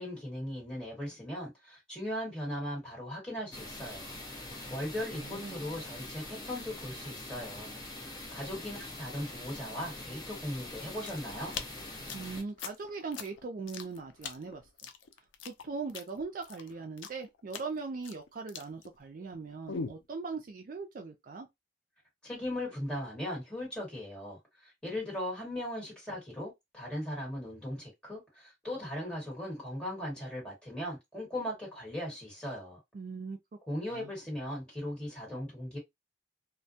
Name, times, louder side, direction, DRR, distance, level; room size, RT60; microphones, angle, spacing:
voice 1, 0.0-4.1 4.4-7.7 8.3-11.5 22.2-32.8 33.7-35.8, left 1 dB, 5° left, 1.3 m, -38 dB
sound 1, 3.5-12.4, left 2 dB, 20° left, 0.6 m, -44 dB
voice 2, 5.1-5.6 12.1-14.6 15.5-21.5 32.9-33.4 33.9-34.1, right 4 dB, 45° right, 0.3 m, -40 dB
sound 2, 10.8-19.4 19.7-20.1, left 5 dB, 85° left, 0.4 m, -42 dB
2.2 x 2.1 x 2.6 m
head